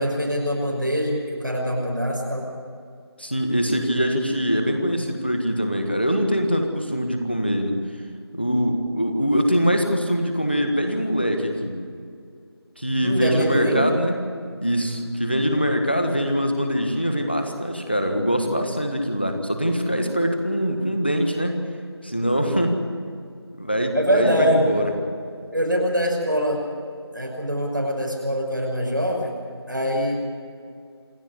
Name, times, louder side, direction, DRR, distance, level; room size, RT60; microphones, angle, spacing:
voice 1, 0.0-2.5 13.0-13.9 23.9-24.7 25.5-26.6 27.1-29.3 29.7-30.3, equal, 50° right, -1 dB, 5.7 m, -23 dB
voice 2, 3.2-7.8 8.3-11.8 12.8-14.1 14.6-21.6 22.0-22.8 23.6-24.9, equal, 25° left, 5 dB, 1.6 m, -23 dB
27.5 x 9.8 x 9.8 m, 2.3 s
figure-of-eight pair, 180°, 14 cm